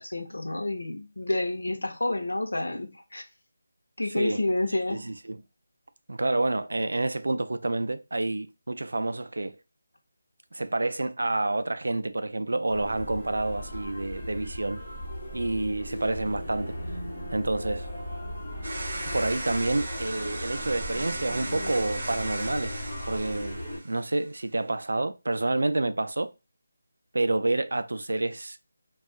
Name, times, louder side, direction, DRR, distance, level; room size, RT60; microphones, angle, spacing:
voice 1, 0.0-3.2 4.0-5.0, left 2 dB, 90° left, 0.6 m, -29 dB
voice 2, 4.1-4.4 4.9-5.4 6.1-9.6 10.5-14.8 15.3-16.7 17.3-17.9 19.1-26.3 27.1-28.6, right 2 dB, 80° right, 0.3 m, -28 dB
sound 1, 12.7-23.8, equal, 25° left, 1.3 m, -37 dB
sound 2, 18.6-24.1, right 1 dB, 55° right, 0.9 m, -37 dB
2.6 x 2.3 x 3.7 m
figure-of-eight pair, 170°, 0 cm